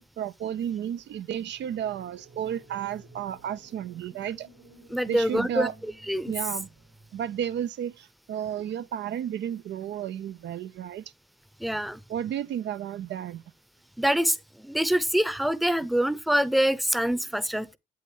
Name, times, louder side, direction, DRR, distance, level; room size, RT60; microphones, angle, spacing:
voice 1, 0.0-4.5 5.1-5.7 6.3-6.7 7.1-11.0 12.1-13.4, right 10 dB, 65° right, 0.4 m, -32 dB
sound 1, 1.5-7.6, right 3 dB, 90° right, 3.0 m, -53 dB
voice 2, 4.9-6.3 11.6-12.0 14.0-17.8, equal, ahead, 0.6 m, -25 dB
8.4 x 7.5 x 3.2 m
supercardioid pair, 60°, 19 cm